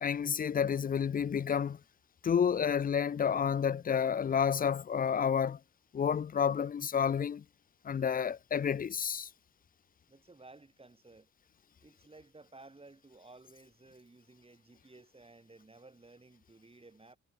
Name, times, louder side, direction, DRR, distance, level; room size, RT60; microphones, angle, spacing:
voice 1, 0.0-1.8 2.2-5.6 5.9-7.4 7.8-9.3, left 7 dB, 30° left, 0.5 m, -30 dB
voice 2, 10.1-11.3 11.8-17.2, right 3 dB, 20° right, 6.3 m, -56 dB
cardioid pair, 90°, 30 cm